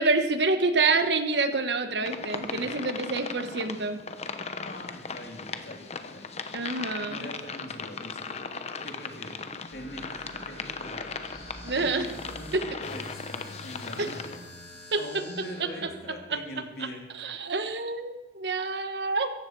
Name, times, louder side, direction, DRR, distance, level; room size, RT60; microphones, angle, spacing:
voice 1, 0.0-4.0 6.5-7.3 11.6-12.0 14.0-14.1 14.9-15.0 17.2-19.3, right 3 dB, 70° right, 8 dB, 1.2 m, -27 dB
sound 1, 2.0-14.4, left 4 dB, 40° left, 0.9 m, -38 dB
voice 2, 2.3-2.8 4.6-6.7 7.0-8.3 8.8-11.1 11.7-14.4 15.0-17.0, left 1 dB, 60° left, 1 dB, 3.0 m, -42 dB
sound 2, 9.7-15.9, left 1 dB, 85° left, 6.0 m, -45 dB
17.0 x 14.5 x 4.7 m, 1.1 s
head